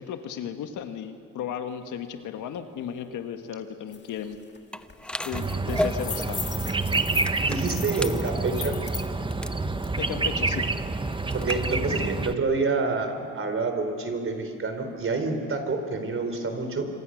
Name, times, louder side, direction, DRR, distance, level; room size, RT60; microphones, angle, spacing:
voice 1, 0.0-4.4 5.3-6.4 10.0-10.7, left 8 dB, 85° left, 7 dB, 1.8 m, -35 dB
sound 1, 3.9-4.0 4.3-4.6 4.9-9.1, left 5 dB, 35° left, 2.1 m, -38 dB
sound 2, 4.7-11.8, left 1 dB, 5° left, 0.8 m, -35 dB
sound 3, 5.3-12.3, right 3 dB, 15° right, 1.0 m, -28 dB
voice 2, 7.4-8.7 11.3-16.9, right 3 dB, 45° right, 6 dB, 4.1 m, -28 dB
26.0 x 26.0 x 6.5 m, 2.4 s
cardioid pair, 90°, 30 cm